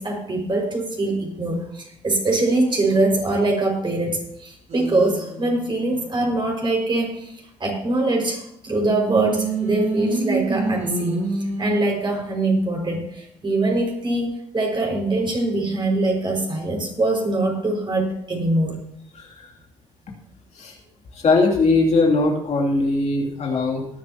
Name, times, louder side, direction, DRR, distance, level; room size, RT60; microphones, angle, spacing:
voice 1, 0.0-18.8, right 2 dB, 30° right, 0 dB, 5.5 m, -23 dB
sound 1, 4.7-6.2 9.1-11.7, right 4 dB, 50° right, 5.5 m, -27 dB
voice 2, 19.1-19.5 20.5-20.8 21.1-23.9, left 3 dB, 45° left, 0 dB, 2.8 m, -20 dB
19.5 x 10.5 x 2.9 m, 0.74 s
hypercardioid pair, 55°, 15 cm